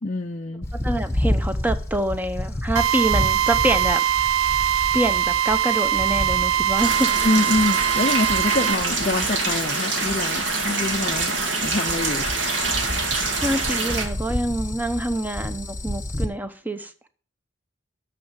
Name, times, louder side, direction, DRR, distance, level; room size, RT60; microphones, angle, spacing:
voice 1, 0.0-0.7 7.2-12.3, left 2 dB, 35° left, 1 dB, 0.5 m, -25 dB
sound 1, 0.6-16.3, left 1 dB, 15° left, 1.1 m, -31 dB
voice 2, 0.8-4.0 4.5-4.6 4.9-7.1 13.4-16.9, right 1 dB, 10° right, 9 dB, 0.8 m, -26 dB
Drill, 2.8-8.8, right 11 dB, 80° right, 0.4 m, -22 dB
sound 2, 6.8-14.1, right 3 dB, 65° right, 2.2 m, -25 dB
9.2 x 6.6 x 7.9 m, 0.42 s
head